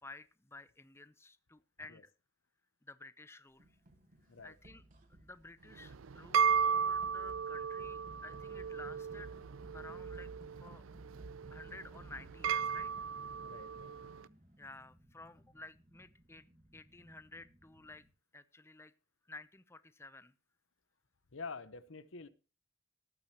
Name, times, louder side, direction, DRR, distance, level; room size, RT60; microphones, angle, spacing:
voice 1, 0.0-2.1 2.8-3.8 4.4-4.8 5.2-9.4 9.7-10.3 10.6-10.8 11.5-12.9 14.6-16.5 16.7-18.0 18.3-18.9 19.2-20.3, left 2 dB, 15° left, 14 dB, 0.6 m, -53 dB
sound 1, 3.6-14.5, right 1 dB, 40° right, 2.6 m, -59 dB
sound 2, 5.7-14.2, right 6 dB, 80° right, 0.5 m, -35 dB
sound 3, 7.8-18.1, equal, 15° right, 1.7 m, -65 dB
voice 2, 13.4-14.0 21.3-22.3, left 4 dB, 70° left, 15 dB, 1.0 m, -47 dB
19.0 x 8.9 x 2.9 m, 0.33 s
head